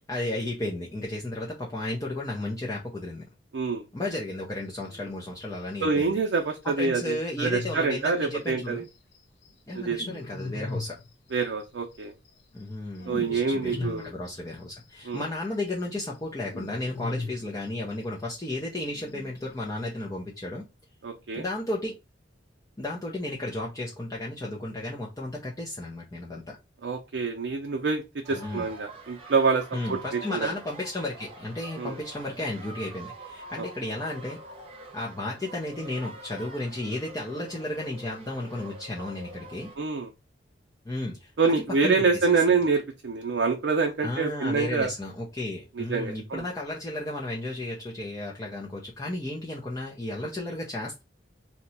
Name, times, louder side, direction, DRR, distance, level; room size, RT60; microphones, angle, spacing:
voice 1, 0.1-3.2 3.9-6.2 6.6-8.8 9.7-11.0 12.5-20.7 21.4-22.0 22.8-26.6 28.3-28.7 29.7-34.4 34.9-39.7 40.8-41.5 41.8-41.9 42.5-42.6 44.0-51.0, left 1 dB, 20° left, -3 dB, 0.6 m, -33 dB
sound 1, 4.8-5.4 5.7-5.8 6.0-6.1 6.3-6.4 6.7-9.2 9.4-11.7 11.9-14.8 15.1-15.2 15.5-18.3 18.5-18.6 18.8-19.6, left 2 dB, 65° left, 0.6 m, -38 dB
voice 2, 5.8-8.8 9.7-10.0 11.3-12.1 13.1-14.1 15.0-15.2 21.0-21.4 26.8-28.0 28.3-29.6 29.9-30.5 31.8-31.9 39.8-40.1 41.4-44.9 45.8-46.4, right 4 dB, 70° right, 2 dB, 0.5 m, -26 dB
sound 2, 28.2-39.8, right 2 dB, 30° right, 0.8 m, -45 dB
2.8 x 2.2 x 4.0 m, 0.25 s
head